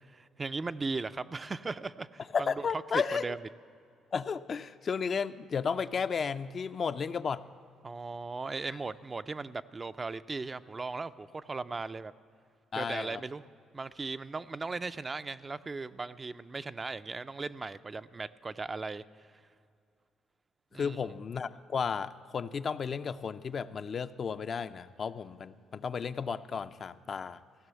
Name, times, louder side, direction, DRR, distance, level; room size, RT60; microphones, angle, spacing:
voice 1, 0.0-3.4 7.8-12.1 12.8-13.4 13.7-19.3 20.7-21.0, right 3 dB, 30° right, 12 dB, 0.3 m, -38 dB
voice 2, 2.3-3.3 4.1-7.4 12.7-13.2 20.7-27.4, left 6 dB, 50° left, 11 dB, 0.4 m, -33 dB
16.0 x 6.1 x 8.2 m, 2.4 s
supercardioid pair, 75°, 0 cm